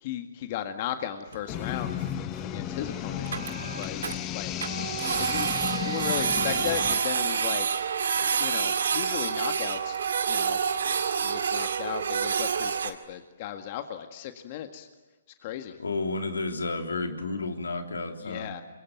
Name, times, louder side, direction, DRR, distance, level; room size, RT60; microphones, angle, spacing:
voice 1, 0.0-1.9 2.4-3.3 3.8-4.8 5.2-5.5 5.8-7.9 8.4-10.0 10.3-10.6 11.2-14.9 15.4-15.8 18.2-18.6, left 10 dB, 40° left, 7 dB, 1.8 m, -36 dB
Printer, 1.3-1.6 2.1-2.2 2.4-2.5 2.8-2.9 3.1-4.2 4.6-12.9, right 6 dB, 70° right, 2.3 m, -28 dB
sound 1, 1.5-7.0, left 11 dB, 25° left, 1.3 m, -34 dB
voice 2, 15.8-18.5, left 3 dB, 85° left, 5 dB, 3.2 m, -31 dB
27.0 x 23.0 x 9.2 m, 1.2 s
hypercardioid pair, 135°, 0 cm